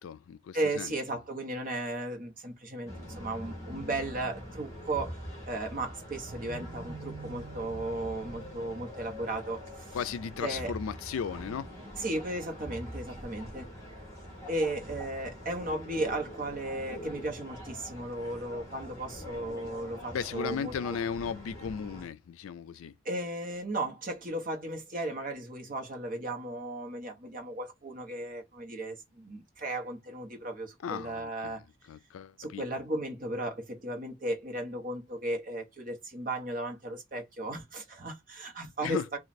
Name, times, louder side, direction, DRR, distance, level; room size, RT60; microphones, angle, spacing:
voice 1, 0.0-1.0 9.9-11.7 20.1-22.9 30.8-31.6 31.9-32.6 38.8-39.2, left 7 dB, 85° left, 0.3 m, -36 dB
voice 2, 0.5-5.1 5.5-9.6 10.4-10.7 12.0-13.7 14.5-20.7 23.0-31.6 32.4-39.2, right 1 dB, 40° right, 1.0 m, -35 dB
sound 1, 2.9-22.1, equal, 15° left, 1.4 m, -44 dB
3.1 x 2.4 x 4.1 m
head